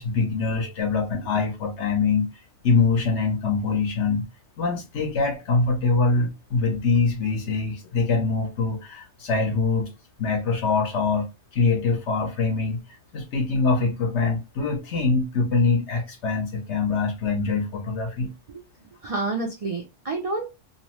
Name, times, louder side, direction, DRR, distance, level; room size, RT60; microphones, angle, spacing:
voice 1, 0.0-2.3 2.6-4.2 4.6-9.9 10.2-11.3 11.5-12.8 13.1-18.3, left 4 dB, 70° left, 1.1 m, -24 dB
voice 2, 18.5-20.5, right 3 dB, 60° right, 0.3 m, -30 dB
2.8 x 2.0 x 2.9 m
omnidirectional pair, 1.2 m